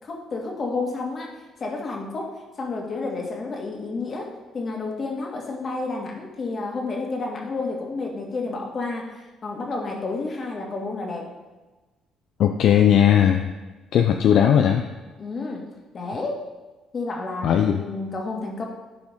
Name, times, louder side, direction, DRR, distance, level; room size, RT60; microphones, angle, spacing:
voice 1, 0.0-1.3 1.6-9.1 9.4-11.3 15.2-15.6 15.9-16.4 16.9-18.6, left 3 dB, 45° left, 0 dB, 1.9 m, -30 dB
voice 2, 12.4-13.5 13.9-14.8 17.4-17.8, left 9 dB, 70° left, 5 dB, 0.5 m, -17 dB
11.5 x 4.9 x 3.6 m, 1.2 s
supercardioid pair, 75°, 0 cm